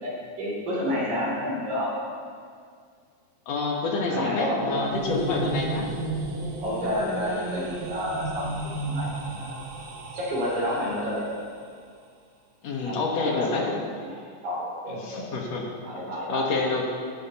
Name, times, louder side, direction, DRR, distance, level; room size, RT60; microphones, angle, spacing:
voice 1, 0.0-2.0 4.1-4.9 6.6-9.7 10.1-11.3 12.8-15.2 15.8-16.5, equal, 85° right, -5 dB, 4.6 m, -30 dB
voice 2, 3.5-5.9 12.6-13.7 14.9-15.7 16.3-16.9, left 3 dB, 65° left, 0 dB, 2.5 m, -27 dB
sound 1, 4.5-11.4, right 2 dB, 55° right, 1.4 m, -33 dB
15.0 x 12.0 x 3.0 m, 2.1 s
omnidirectional pair, 3.4 m